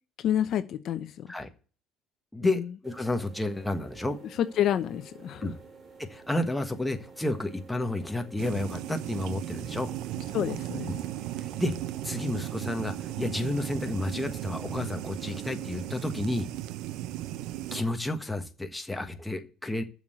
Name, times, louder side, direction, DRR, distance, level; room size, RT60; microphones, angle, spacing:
voice 1, 0.2-1.3 2.4-2.6 4.6-5.5 10.3-10.9, left 10 dB, 55° left, 0.7 m, -28 dB
voice 2, 2.3-4.2 5.4-5.5 6.0-9.9 10.9-11.0 11.4-11.7 12.0-16.5 17.7-19.8, left 2 dB, 5° left, 1.3 m, -31 dB
sound 1, 2.8-16.0, right 4 dB, 30° right, 3.1 m, -50 dB
sound 2, 8.4-17.8, right 14 dB, 75° right, 0.6 m, -36 dB
7.2 x 6.4 x 7.9 m
cardioid pair, 110°, 0 cm